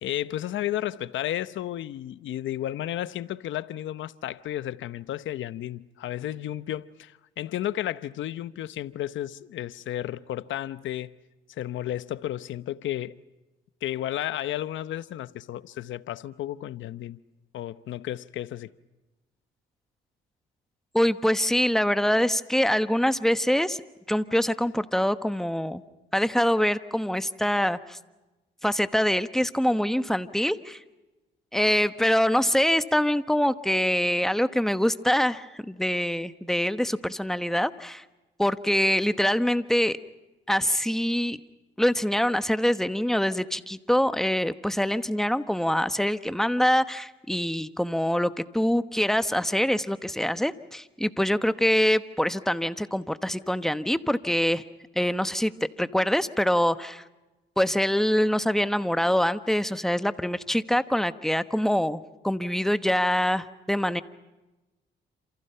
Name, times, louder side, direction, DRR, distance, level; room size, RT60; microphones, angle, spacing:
voice 1, 0.0-11.1 11.5-13.2 13.8-17.2 17.5-18.7, left 12 dB, 75° left, 0.9 m, -33 dB
voice 2, 20.9-23.8 24.1-25.8 26.1-28.0 28.6-30.8 31.5-38.0 38.4-40.0 40.5-41.4 41.8-54.6 54.9-55.5 55.8-57.0 57.6-64.0, equal, ahead, 1.1 m, -24 dB
28.0 x 28.0 x 5.7 m
cardioid pair, 90°, 20 cm